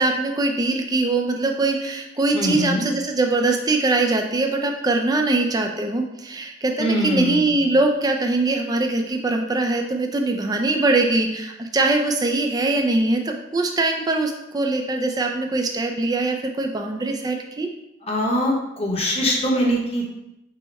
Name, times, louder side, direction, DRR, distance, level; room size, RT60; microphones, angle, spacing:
voice 1, 0.0-17.7, right 2 dB, 20° right, 3 dB, 0.4 m, -22 dB
voice 2, 2.3-2.8 6.8-7.5 18.0-20.0, equal, 30° left, -3 dB, 1.0 m, -22 dB
5.5 x 2.1 x 4.1 m, 0.89 s
head